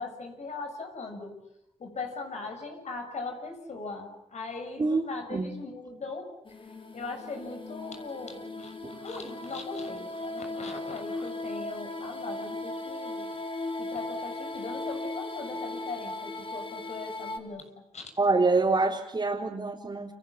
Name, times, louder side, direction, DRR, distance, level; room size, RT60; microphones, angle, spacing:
voice 1, 0.0-1.4 1.8-6.3 6.6-13.4 13.8-18.1, left 3 dB, 70° left, 5 dB, 7.0 m, -40 dB
voice 2, 4.8-5.5 8.8-9.0 18.2-20.1, right 3 dB, 40° right, -1 dB, 3.6 m, -26 dB
sound 1, 6.4-17.4, left 2 dB, 45° left, 4.3 m, -37 dB
30.0 x 26.0 x 7.3 m, 0.78 s
cardioid pair, 65°, 12 cm